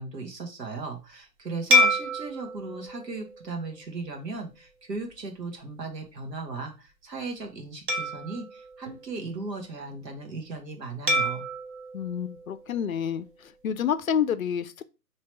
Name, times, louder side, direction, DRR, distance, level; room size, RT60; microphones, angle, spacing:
voice 1, 0.0-11.5, right 3 dB, 75° right, 1.4 m, -37 dB
sound 1, 1.7-4.4 5.0-5.2 7.9-9.7 11.1-13.4, left 1 dB, 30° right, 0.8 m, -28 dB
voice 2, 11.9-14.8, left 8 dB, 55° left, 0.5 m, -29 dB
3.1 x 2.9 x 4.5 m
figure-of-eight pair, 135°, 50 cm